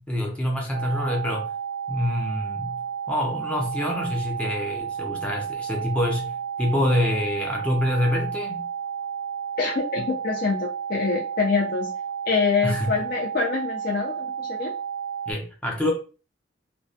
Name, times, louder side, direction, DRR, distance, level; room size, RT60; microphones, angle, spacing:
voice 1, 0.1-1.5 1.9-2.8 3.1-8.7 12.6-13.0 15.3-15.9, left 1 dB, 5° left, 0.6 m, -26 dB
sound 1, 0.7-15.3, right 8 dB, 60° right, 0.4 m, -32 dB
voice 2, 9.6-11.9 12.3-14.7, left 5 dB, 55° left, 0.4 m, -25 dB
2.2 x 2.1 x 2.6 m
head